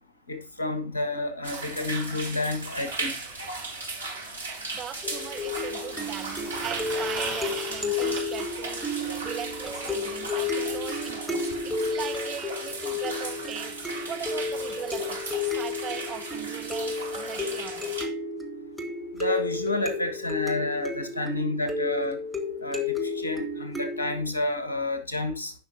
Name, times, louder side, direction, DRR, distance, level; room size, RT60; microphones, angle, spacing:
voice 1, 0.3-3.1 19.2-22.2 22.6-25.5, left 2 dB, 75° left, 1.6 m, -30 dB
sound 1, 1.4-18.0, right 3 dB, 75° right, 2.1 m, -37 dB
sound 2, 3.3-3.4 5.3-9.2 11.1-11.2 11.5-11.6 11.9-12.0 12.9-13.0, right 4 dB, 55° right, 3.6 m, -38 dB
voice 2, 4.7-18.0, right 9 dB, 30° right, 1.3 m, -40 dB
sound 3, 5.0-24.2, left 3 dB, ahead, 1.7 m, -32 dB
16.0 x 5.8 x 2.8 m
figure-of-eight pair, 90°, 0 cm